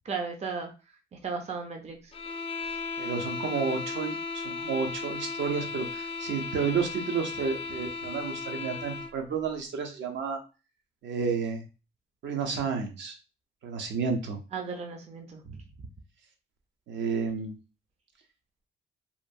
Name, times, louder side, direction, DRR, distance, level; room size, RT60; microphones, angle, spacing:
voice 1, 0.0-0.7 1.1-2.1 14.5-15.6, right 5 dB, 35° right, 4 dB, 0.5 m, -35 dB
sound 1, 2.1-9.2, left 4 dB, 30° left, 0.4 m, -36 dB
voice 2, 3.0-10.4 11.0-11.6 12.2-13.2 13.6-14.4 16.9-17.5, right 5 dB, 65° right, 3 dB, 0.7 m, -31 dB
2.9 x 2.2 x 2.5 m, 0.31 s
cardioid pair, 90°, 20 cm